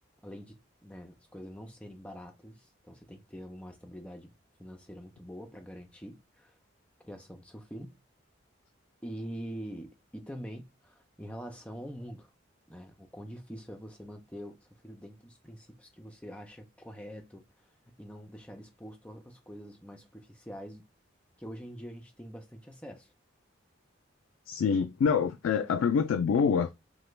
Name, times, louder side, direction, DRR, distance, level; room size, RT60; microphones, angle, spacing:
voice 1, 0.2-4.3 4.6-6.6 7.0-8.0 9.0-12.3 12.7-17.4 18.0-20.9 21.4-23.1, equal, 5° left, 0.5 m, -45 dB
voice 2, 24.5-26.7, left 6 dB, 90° left, 0.3 m, -26 dB
2.9 x 2.1 x 3.2 m
head